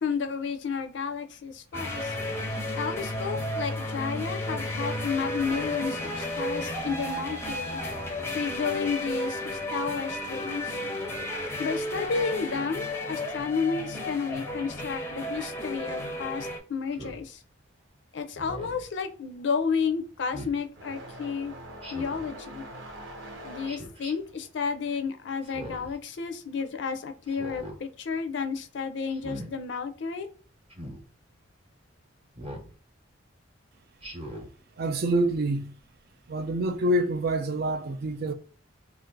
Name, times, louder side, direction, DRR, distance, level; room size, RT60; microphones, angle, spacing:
voice 1, 0.0-2.1 2.8-7.8 8.3-10.8 11.6-17.4 18.1-21.5 21.9-22.7 23.4-30.3, left 5 dB, 65° left, 0.4 m, -32 dB
sound 1, 1.7-16.6, left 1 dB, 15° left, 0.5 m, -33 dB
Speech synthesizer, 16.9-17.2 18.4-18.9 20.3-20.6 21.8-22.3 23.6-24.1 25.4-26.0 27.3-27.8 29.1-29.5 30.7-31.0 32.4-32.7 34.0-34.5, equal, 30° right, 0.8 m, -40 dB
sound 2, 18.9-27.1 27.4-28.4 29.4-29.5 30.3-30.4 32.2-32.3, right 1 dB, 85° right, 1.0 m, -45 dB
voice 2, 34.8-35.7 36.3-38.3, right 1 dB, 50° right, 0.4 m, -26 dB
2.5 x 2.4 x 3.8 m
head